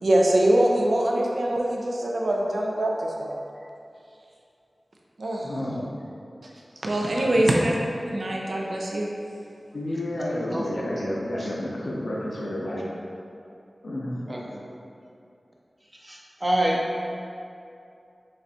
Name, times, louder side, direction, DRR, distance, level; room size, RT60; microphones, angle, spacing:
voice 1, 0.0-3.4 5.2-5.5 6.8-7.7 8.1-9.1, right 1 dB, 70° right, -2 dB, 0.5 m, -23 dB
voice 2, 5.4-5.8 7.1-7.6 8.0-8.1 9.7-12.9 13.8-14.2, left 1 dB, 80° left, -4 dB, 0.8 m, -30 dB
voice 3, 14.3-14.6 16.0-16.8, right 1 dB, 30° right, -3 dB, 0.6 m, -27 dB
5.2 x 3.3 x 2.8 m, 2.6 s
wide cardioid pair, 60°, 0 cm